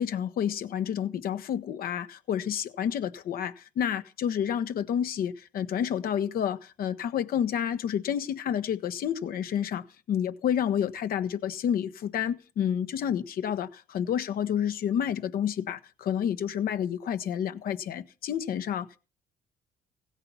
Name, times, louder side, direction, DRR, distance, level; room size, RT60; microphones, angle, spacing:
voice 1, 0.0-19.0, left 9 dB, 60° left, 1.2 m, -29 dB
16.0 x 8.7 x 5.6 m
cardioid pair, 110°, 17 cm